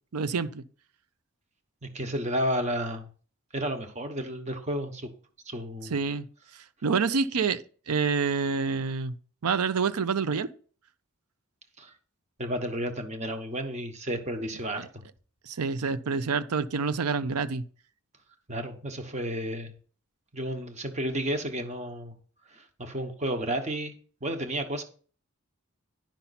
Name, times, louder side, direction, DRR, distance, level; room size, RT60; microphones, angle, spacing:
voice 1, 0.1-0.6 5.9-6.3 6.8-9.1 9.4-10.5 14.8-14.9 15.5-17.6, right 5 dB, 85° right, 0.6 m, -27 dB
voice 2, 1.8-3.1 3.5-5.1 5.5-6.0 11.8-11.9 12.4-15.0 18.5-19.7 20.3-22.1 22.5-23.9 24.2-24.8, equal, 30° right, 1.1 m, -32 dB
10.5 x 5.7 x 4.1 m
head